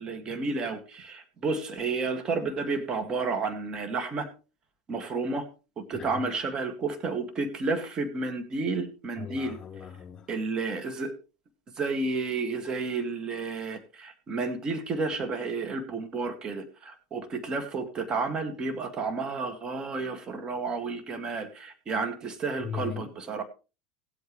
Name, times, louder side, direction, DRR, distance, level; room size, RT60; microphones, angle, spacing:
voice 1, 0.0-4.3 4.9-5.5 5.8-9.6 10.3-11.1 11.8-23.4, right 3 dB, 35° right, 2.3 m, -31 dB
voice 2, 5.9-6.3 9.2-10.3 22.6-23.1, left 8 dB, 30° left, 5.4 m, -38 dB
18.5 x 8.3 x 3.4 m
hypercardioid pair, 85°, 2 cm